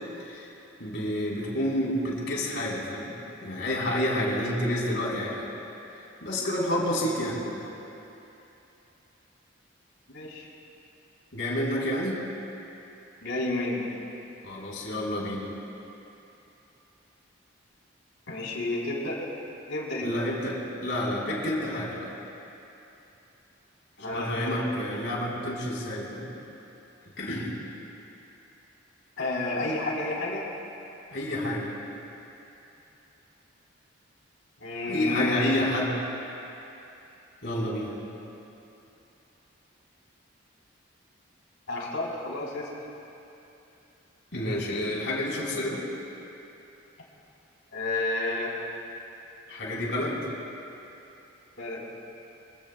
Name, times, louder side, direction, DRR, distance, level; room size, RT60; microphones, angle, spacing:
voice 1, 0.8-3.2 3.4-5.5 6.2-7.6 11.3-12.2 14.4-15.5 20.0-22.1 24.1-26.3 27.2-27.5 31.1-31.8 34.9-35.9 37.4-37.9 44.3-45.8 49.5-50.3, left 1 dB, 60° left, -5 dB, 3.8 m, -29 dB
voice 2, 10.1-10.5 13.2-13.9 18.3-19.2 19.7-20.1 24.0-24.7 29.2-30.5 34.6-35.6 41.7-42.7 47.7-48.5 51.6-51.8, left 2 dB, 80° left, -4 dB, 3.5 m, -30 dB
25.5 x 16.0 x 2.3 m, 3.0 s
head